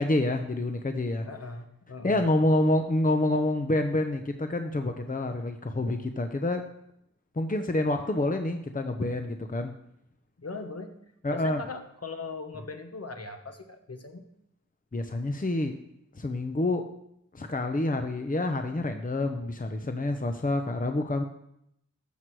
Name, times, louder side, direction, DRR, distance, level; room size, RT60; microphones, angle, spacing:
voice 1, 0.0-1.3 2.0-6.6 7.4-9.7 11.2-11.6 14.9-15.7 16.1-16.9 17.3-21.2, left 1 dB, 25° left, 6 dB, 0.8 m, -27 dB
voice 2, 1.3-2.2 10.4-11.0 11.3-14.3, left 3 dB, 50° left, 6 dB, 1.2 m, -39 dB
14.0 x 6.1 x 4.8 m, 0.77 s
wide cardioid pair, 60°, 31 cm